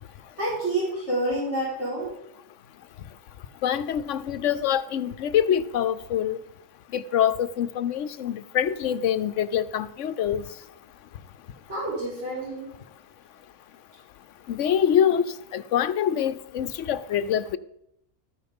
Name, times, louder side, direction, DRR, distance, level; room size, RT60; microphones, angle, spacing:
voice 1, 0.4-2.1 11.7-12.7, right 1 dB, 60° right, 5.6 m, -28 dB
voice 2, 3.6-6.4 6.9-10.4 14.5-15.3 15.5-17.6, left 9 dB, 70° left, 1.0 m, -25 dB
14.0 x 9.4 x 5.3 m
omnidirectional pair, 1.3 m